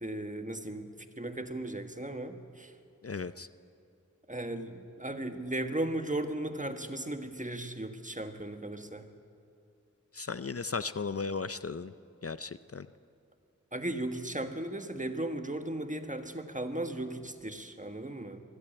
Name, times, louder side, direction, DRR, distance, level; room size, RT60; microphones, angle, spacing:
voice 1, 0.0-2.7 4.3-9.1 13.7-18.4, right 1 dB, 25° right, 7 dB, 1.4 m, -36 dB
voice 2, 3.0-3.5 10.1-11.9 12.2-12.9, left 4 dB, 50° left, 13 dB, 0.5 m, -36 dB
22.5 x 14.0 x 8.8 m, 2.5 s
wide cardioid pair, 50°, 31 cm